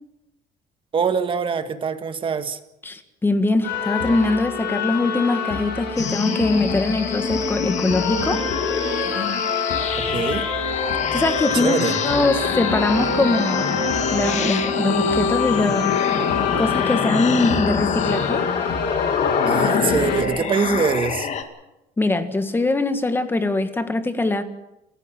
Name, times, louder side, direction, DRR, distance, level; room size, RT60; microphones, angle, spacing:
voice 1, 0.9-2.6 10.1-10.5 11.5-12.0 19.4-21.3, right 6 dB, 30° right, 1.7 m, -23 dB
voice 2, 2.8-8.4 9.2-9.3 11.1-13.7 14.1-15.9 16.6-18.5 22.0-24.4, left 2 dB, 10° left, 1.7 m, -22 dB
sound 1, 3.6-20.2, left 4 dB, 85° left, 7.6 m, -26 dB
sound 2, 6.0-21.4, left 7 dB, 40° left, 2.1 m, -25 dB
28.0 x 15.0 x 7.4 m
cardioid pair, 160°, 17 cm